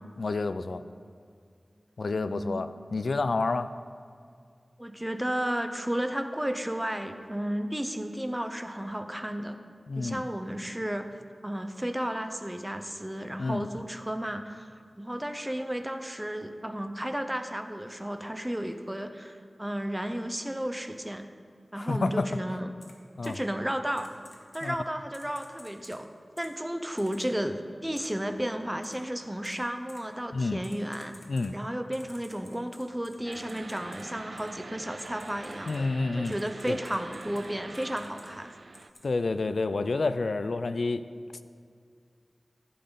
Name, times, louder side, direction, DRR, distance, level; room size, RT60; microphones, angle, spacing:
voice 1, 0.2-0.8 2.0-3.7 9.9-10.2 13.4-13.7 21.8-22.3 23.2-23.4 24.6-24.8 30.3-30.6 31.3-31.5 35.7-36.3 36.7-36.8 39.0-41.0, left 3 dB, 80° left, 12 dB, 0.4 m, -29 dB
voice 2, 2.1-2.6 4.8-9.6 9.9-11.1 11.4-14.7 15.0-21.3 21.7-22.7 23.2-24.1 24.5-26.1 26.4-31.1 31.5-35.9 36.2-38.5, equal, 10° right, 7 dB, 0.8 m, -33 dB
Typing, 22.8-22.9 23.2-23.4 24.0-24.7 25.1-26.0 26.4-26.5 27.0-27.3 28.0-28.1 28.8-29.0 29.4-29.6 29.9-30.0 30.6-31.5 31.9-34.0 34.4-34.5 35.0-35.8 36.3-37.5 37.7-38.3 38.7-39.1, left 1 dB, 50° left, 1.9 m, -52 dB
sound 1, 33.2-38.9, right 3 dB, 70° right, 0.3 m, -44 dB
15.0 x 8.5 x 4.0 m, 2.3 s
wide cardioid pair, 60°, 0 cm